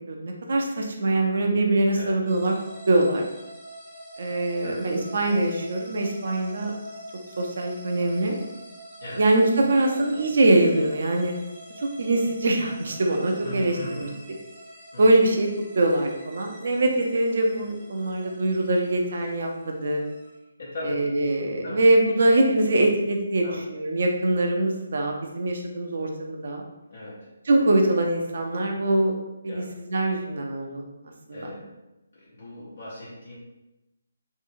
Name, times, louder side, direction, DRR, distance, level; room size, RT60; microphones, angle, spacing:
voice 1, 0.1-2.6 2.9-3.3 4.2-6.7 7.4-8.4 9.2-11.3 11.8-14.1 15.0-15.5 15.8-20.0 20.8-26.6 27.5-29.1 29.4-29.6 29.9-30.8 31.3-31.5, right 2 dB, 60° right, 1 dB, 0.5 m, -23 dB
sound 1, 2.3-20.4, right 1 dB, 15° right, 0.8 m, -45 dB
voice 2, 13.4-14.2 14.9-15.0 20.6-21.0 21.6-21.8 23.4-23.6 26.9-27.3 29.5-29.7 31.3-31.7 32.1-33.4, left 1 dB, 60° left, -8 dB, 0.9 m, -38 dB
2.8 x 2.7 x 2.5 m, 0.98 s
figure-of-eight pair, 145°, 0 cm